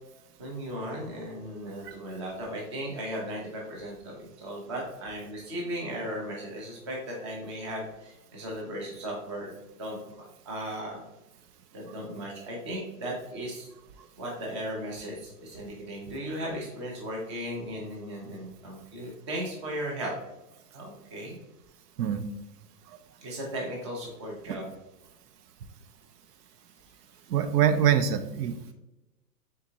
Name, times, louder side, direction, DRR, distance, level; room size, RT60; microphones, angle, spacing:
voice 1, 0.4-9.5 9.8-10.0 10.4-11.0 11.7-13.7 14.2-20.1 20.7-21.4 23.2-24.7, right 1 dB, 20° right, -2 dB, 0.5 m, -36 dB
voice 2, 27.3-28.5, right 9 dB, 85° right, 9 dB, 0.6 m, -24 dB
3.8 x 3.6 x 2.7 m, 0.96 s
hypercardioid pair, 160°, 47 cm